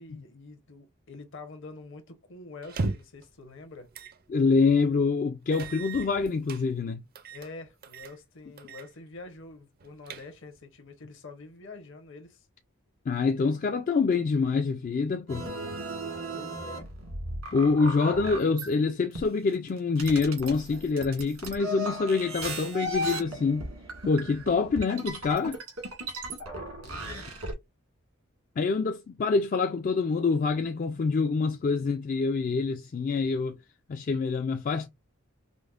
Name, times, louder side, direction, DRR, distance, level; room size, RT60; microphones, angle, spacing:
voice 1, 0.0-3.9 7.3-12.5 13.6-13.8 16.3-16.9 26.8-27.3 29.3-29.4, left 3 dB, 60° left, 0.9 m, -46 dB
sound 1, 2.6-3.2 3.9-4.2 4.6-4.7 5.5-6.6 7.1-7.5 7.8-8.2 8.6-8.9 9.2-9.3 9.8-10.6, right 3 dB, 45° right, 0.5 m, -36 dB
voice 2, 4.3-7.0 13.1-15.4 17.5-23.7 24.0-25.6 28.6-33.6 33.9-34.9, left 4 dB, 40° left, 0.3 m, -26 dB
sound 2, 15.3-18.7 19.2-27.5, right 1 dB, 85° right, 1.7 m, -36 dB
5.1 x 2.1 x 2.4 m
head